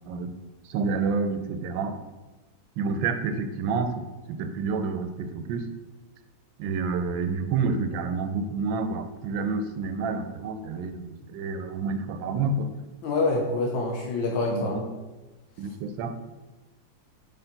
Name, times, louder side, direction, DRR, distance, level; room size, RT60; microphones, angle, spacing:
voice 1, 0.6-2.0 2.8-5.7 6.6-12.7 14.5-14.9 15.6-16.1, right 4 dB, 85° right, 7 dB, 1.3 m, -29 dB
voice 2, 13.0-14.8, left 3 dB, 90° left, 0 dB, 1.5 m, -26 dB
5.6 x 4.4 x 3.9 m, 1.1 s
omnidirectional pair, 2.0 m